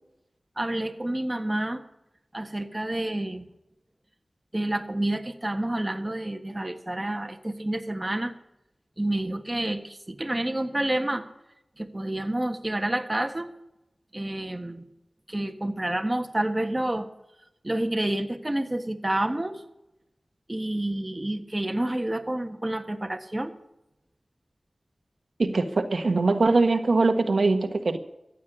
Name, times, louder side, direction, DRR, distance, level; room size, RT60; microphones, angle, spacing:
voice 1, 0.6-1.8 2.3-3.4 4.5-8.3 9.0-11.2 11.8-13.5 14.1-14.8 15.3-17.1 17.6-19.6 20.5-23.5, right 1 dB, 25° right, 5 dB, 1.5 m, -29 dB
voice 2, 25.4-28.0, right 3 dB, 80° right, 7 dB, 1.3 m, -22 dB
14.5 x 8.5 x 8.6 m, 0.88 s
wide cardioid pair, 55°, 0 cm